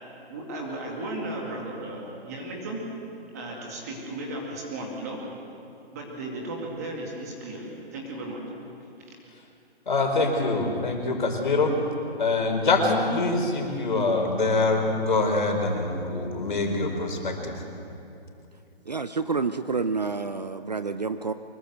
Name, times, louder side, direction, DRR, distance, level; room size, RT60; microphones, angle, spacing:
voice 1, 0.3-2.8 3.3-5.2 5.9-8.4 9.0-9.1, right 1 dB, 15° right, -1 dB, 2.3 m, -35 dB
voice 2, 9.9-11.7 12.2-17.5, left 3 dB, 50° left, 3 dB, 4.5 m, -24 dB
voice 3, 18.9-21.3, right 4 dB, 40° right, 11 dB, 0.6 m, -28 dB
24.5 x 21.0 x 7.9 m, 2.7 s
hypercardioid pair, 180°, 32 cm